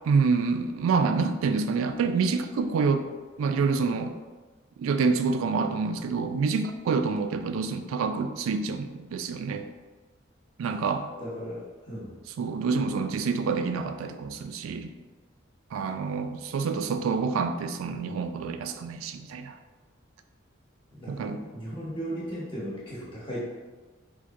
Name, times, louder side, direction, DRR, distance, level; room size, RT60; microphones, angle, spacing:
voice 1, 0.1-3.1 3.4-4.1 4.8-9.6 10.6-11.1 12.4-14.9 15.7-19.5 21.1-21.4, right 4 dB, 85° right, 9 dB, 0.3 m, -27 dB
voice 2, 11.2-12.2 20.9-23.4, equal, 25° left, -8 dB, 0.9 m, -36 dB
4.2 x 2.6 x 2.4 m, 1.3 s
head